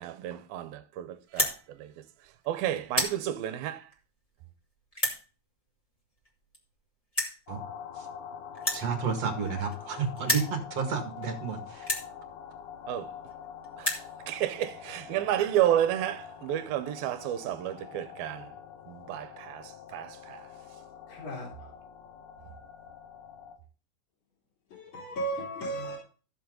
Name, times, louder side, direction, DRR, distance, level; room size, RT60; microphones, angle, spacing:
voice 1, 0.0-1.5 1.8-1.9 2.5-3.8 12.9-13.1 13.8-13.9 14.3-18.5 18.9-20.4, right 12 dB, 80° right, 2.6 m, -31 dB
sound 1, 1.2-1.6 2.2-2.4 2.8-3.2 3.9-4.0 4.9-5.2 6.2-6.3 6.5-6.6 7.1-7.4 8.5-9.9 10.2-10.5 11.2-11.3 11.8-12.1 13.0-13.1 13.3-13.4 13.6-14.1, equal, 15° left, 1.6 m, -30 dB
sound 2, 7.5-23.6, left 8 dB, 80° left, 3.1 m, -45 dB
voice 2, 8.7-11.9, right 5 dB, 50° right, 2.6 m, -31 dB
voice 3, 21.1-21.5 24.7-26.0, right 2 dB, 45° left, 3.8 m, -35 dB
14.0 x 7.1 x 3.9 m
omnidirectional pair, 4.4 m